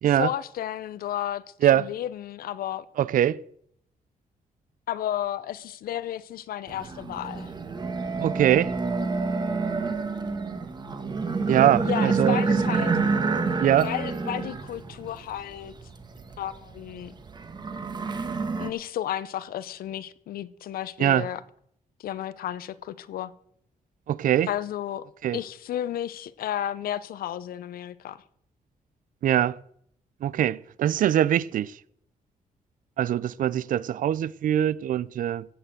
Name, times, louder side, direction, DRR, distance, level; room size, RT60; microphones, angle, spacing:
voice 1, 0.1-2.8 4.9-7.5 11.8-13.0 13.8-15.8 16.4-17.1 18.6-21.4 22.0-23.3 24.5-25.1 25.3-28.2, left 11 dB, 90° left, 0.7 m, -32 dB
voice 2, 3.0-3.4 8.2-8.7 11.5-12.4 13.6-13.9 21.0-21.3 24.1-24.5 25.2-25.4 29.2-29.6 30.2-31.7 33.0-35.5, right 11 dB, 65° right, 0.5 m, -22 dB
sound 1, 6.7-18.7, right 4 dB, 30° right, 1.4 m, -28 dB
15.5 x 6.8 x 7.7 m
wide cardioid pair, 145°, 15 cm